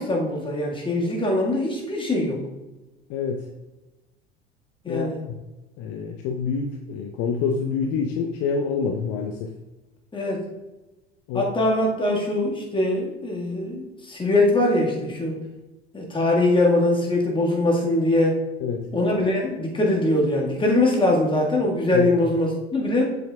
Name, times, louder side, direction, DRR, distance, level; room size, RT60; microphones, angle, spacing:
voice 1, 0.0-2.4 4.8-5.2 10.1-10.4 11.3-15.4 15.9-18.4 18.9-23.0, left 1 dB, 15° left, -1 dB, 1.8 m, -22 dB
voice 2, 3.1-3.4 4.9-5.4 5.8-9.5 11.3-11.5 18.6-18.8 21.9-22.1, left 5 dB, 50° left, 3 dB, 0.7 m, -27 dB
7.8 x 7.2 x 2.4 m, 1.1 s
figure-of-eight pair, 70°, 32 cm